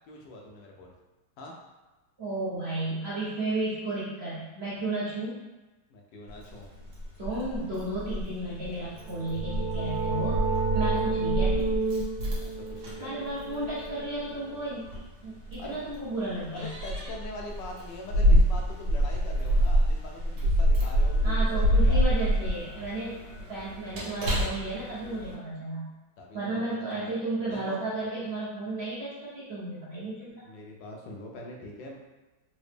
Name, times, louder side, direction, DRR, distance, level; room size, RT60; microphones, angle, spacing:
voice 1, 0.1-0.9 1.4-1.6 5.9-6.7 12.3-13.3 15.6-15.8 16.5-22.2 26.2-26.6 26.9-27.1 27.4-27.8 30.4-31.9, left 2 dB, 80° left, -1 dB, 1.2 m, -43 dB
voice 2, 2.2-5.4 7.2-10.4 10.7-11.6 13.0-16.7 21.2-25.9 26.3-30.4, right 2 dB, 55° right, -10 dB, 0.7 m, -33 dB
Keys jangling, 6.3-25.3, equal, 70° right, 1.6 m, -27 dB
sound 1, 9.0-14.5, right 4 dB, 90° right, 0.6 m, -31 dB
3.8 x 2.0 x 3.2 m, 1.1 s
omnidirectional pair, 1.9 m